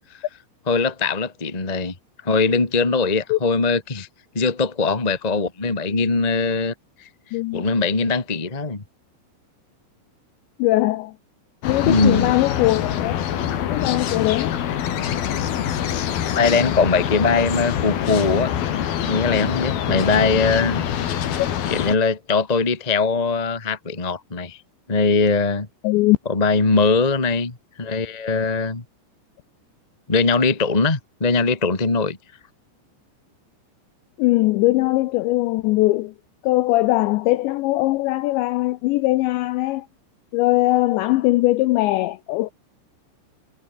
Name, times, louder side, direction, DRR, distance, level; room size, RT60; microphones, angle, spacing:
voice 1, 0.7-1.9 2.2-4.1 4.3-6.7 7.0-7.1 7.5-8.8 11.8-12.4 16.3-18.5 19.1-20.9 21.7-24.6 24.9-25.7 26.3-28.8 30.1-32.2, left 4 dB, 25° left, 0.8 m, -21 dB
voice 2, 7.3-7.6 10.6-11.1 11.6-13.3 13.6-14.6 25.8-26.2 34.2-36.1 36.4-39.9 40.3-42.5, left 18 dB, 85° left, 2.6 m, -20 dB
sound 1, 11.6-21.9, left 9 dB, 55° left, 3.6 m, -25 dB
omnidirectional pair, 5.9 m